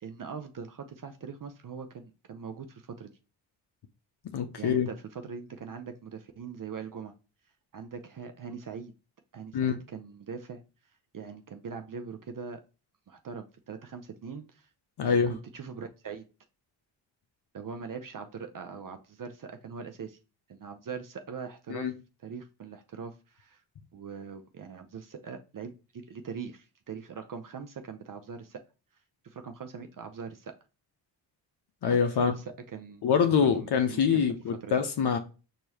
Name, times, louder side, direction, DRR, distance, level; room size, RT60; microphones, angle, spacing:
voice 1, 0.0-3.1 4.6-7.1 7.7-8.9 9.3-10.6 11.1-12.6 13.1-14.7 15.0-16.2 17.5-20.2 20.5-21.9 22.2-23.6 23.9-28.6 29.2-30.5 31.9-33.1 33.4-34.3 34.6-34.7, right 6 dB, 45° right, 0.7 m, -41 dB
voice 2, 4.2-4.9 9.5-9.7 15.0-15.3 21.7-21.9 31.8-32.3 33.0-35.2, left 6 dB, 55° left, 0.7 m, -25 dB
4.6 x 2.8 x 2.8 m
supercardioid pair, 40°, 48 cm